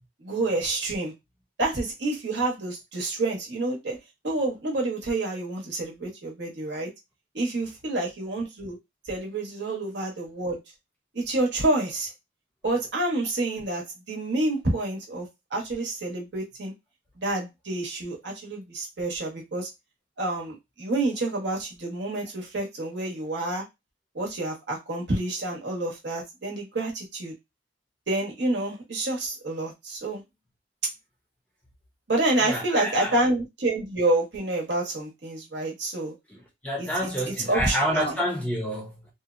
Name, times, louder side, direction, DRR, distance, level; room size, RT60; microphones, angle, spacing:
voice 1, 0.2-1.1 1.6-4.0 4.2-6.9 7.3-8.8 9.0-10.6 11.1-12.1 12.6-16.7 17.2-19.7 20.2-23.6 24.1-27.3 28.1-30.2 32.1-36.1 36.8-38.2, right 2 dB, 65° right, 0.9 m, -28 dB
voice 2, 32.4-33.2 36.3-39.1, equal, 10° left, 0.6 m, -29 dB
2.8 x 2.0 x 2.4 m
head